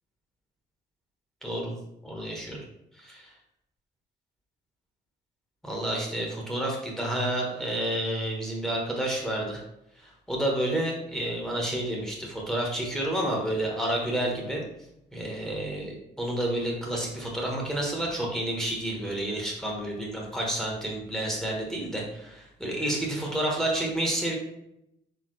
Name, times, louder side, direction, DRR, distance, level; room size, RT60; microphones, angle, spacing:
voice 1, 1.4-1.7 2.0-2.6 3.0-3.3 5.6-9.6 10.0-14.6 15.1-24.3, right 1 dB, 5° left, -2 dB, 1.2 m, -30 dB
4.4 x 3.4 x 3.2 m, 0.82 s
cardioid pair, 90°, 20 cm